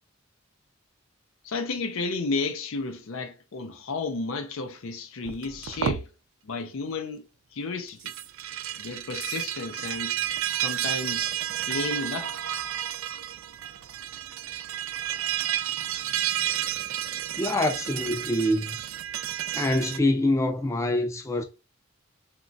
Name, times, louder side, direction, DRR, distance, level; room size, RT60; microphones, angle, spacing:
voice 1, 1.4-6.1 6.4-7.2 7.5-8.0 8.8-10.2 10.6-11.3 11.7-12.3, left 3 dB, 85° left, 0.5 m, -32 dB
sound 1, 5.2-6.0 7.9-20.0, right 11 dB, 80° right, 0.3 m, -31 dB
voice 2, 17.4-18.8 19.5-21.4, left 1 dB, 15° left, 0.3 m, -25 dB
3.0 x 2.2 x 2.6 m
head